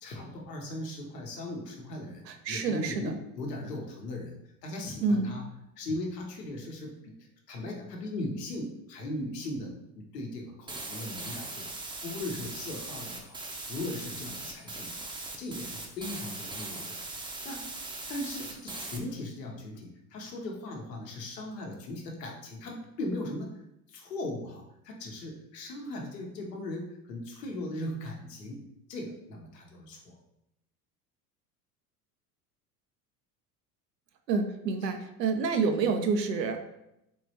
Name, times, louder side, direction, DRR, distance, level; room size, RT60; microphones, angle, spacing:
voice 1, 0.0-5.5 5.8-7.1 7.5-11.7 12.0-13.4 13.7-15.1 15.4-17.6 18.1-23.5 23.9-28.6 28.9-30.2 34.8-34.9, left 1 dB, 85° left, 0 dB, 0.9 m, -38 dB
voice 2, 2.3-3.2 5.0-5.3 34.3-36.6, right 4 dB, 90° right, 6 dB, 0.6 m, -28 dB
sound 1, 10.7-19.0, right 2 dB, 10° right, 0.5 m, -40 dB
3.6 x 3.1 x 2.8 m, 0.84 s
hypercardioid pair, 75°, 48 cm